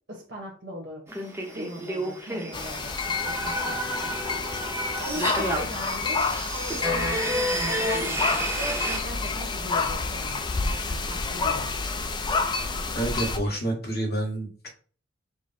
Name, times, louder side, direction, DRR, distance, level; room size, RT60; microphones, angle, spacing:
voice 1, 0.1-1.2 1.5-4.2 5.0-11.8, equal, 55° right, -1 dB, 1.1 m, -39 dB
sound 1, 1.1-9.0, right 1 dB, 10° right, 0.8 m, -30 dB
sound 2, 2.5-13.4, left 4 dB, 25° left, 0.4 m, -29 dB
voice 2, 12.9-14.7, right 1 dB, 55° left, -1 dB, 1.6 m, -28 dB
5.0 x 2.1 x 4.2 m, 0.41 s
head